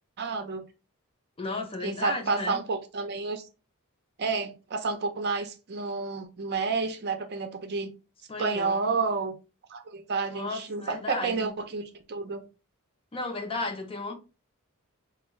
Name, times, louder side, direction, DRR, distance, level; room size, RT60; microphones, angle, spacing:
voice 1, 0.2-0.6 1.8-3.4 4.2-7.9 8.4-9.3 9.7-12.4, right 4 dB, 50° right, 0.5 m, -30 dB
voice 2, 1.4-2.6 8.3-8.9 10.3-11.5 13.1-14.2, left 3 dB, 25° left, 0.6 m, -34 dB
4.4 x 2.3 x 3.0 m
head